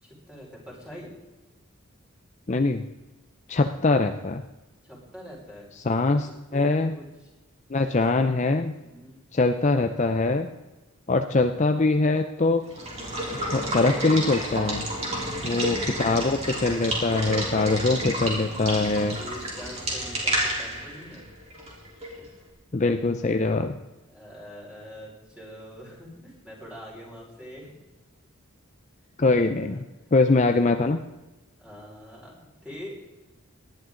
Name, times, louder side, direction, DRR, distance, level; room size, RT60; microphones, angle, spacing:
voice 1, 0.0-1.1 4.8-5.7 6.0-7.3 7.8-8.0 8.8-9.2 14.9-15.5 19.2-21.5 22.2-22.3 24.1-27.8 29.5-29.8 31.6-32.9, equal, 5° right, -5 dB, 5.2 m, -44 dB
voice 2, 2.5-2.9 3.5-4.4 5.9-6.9 7.7-8.7 9.3-10.5 11.1-12.6 13.3-14.9 15.4-19.2 22.7-23.8 29.2-29.8 30.1-31.0, left 3 dB, 35° left, 6 dB, 0.6 m, -23 dB
Water / Water tap faucet / Liquid, 12.6-22.3, right 1 dB, 30° right, 3.8 m, -30 dB
18.5 x 11.5 x 3.9 m, 1.1 s
head